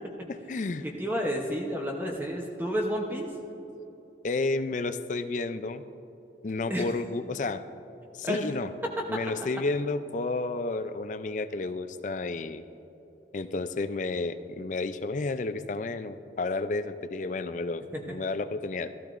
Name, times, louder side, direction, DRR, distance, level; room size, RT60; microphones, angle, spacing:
voice 1, 0.3-0.9 4.2-5.8 6.4-7.6 8.1-8.7 9.1-12.7 13.3-19.0, left 3 dB, 45° left, 11 dB, 0.4 m, -31 dB
voice 2, 1.0-3.3 6.7-6.9 8.2-8.4 17.9-18.2, equal, 10° right, 0 dB, 0.7 m, -30 dB
15.0 x 13.5 x 2.5 m, 3.0 s
head